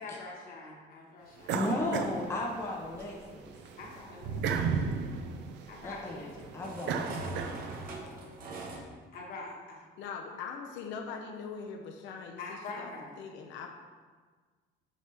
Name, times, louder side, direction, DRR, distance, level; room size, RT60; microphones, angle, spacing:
voice 1, 0.0-1.6 3.8-4.6 5.7-6.5 9.1-9.8 12.4-13.1, left 3 dB, 50° left, -2 dB, 1.4 m, -44 dB
voice 2, 1.5-3.5 5.8-6.3 6.5-7.4, left 1 dB, 15° left, -2 dB, 0.6 m, -35 dB
sound 1, 1.5-3.0 3.4-8.0, right 5 dB, 70° right, 0.5 m, -34 dB
sound 2, 2.0-8.8, right 2 dB, 50° right, 1.0 m, -46 dB
voice 3, 10.0-12.9 13.2-13.7, left 5 dB, 90° left, 3 dB, 0.7 m, -41 dB
6.3 x 5.7 x 3.4 m, 1.5 s
cardioid pair, 170°, 19 cm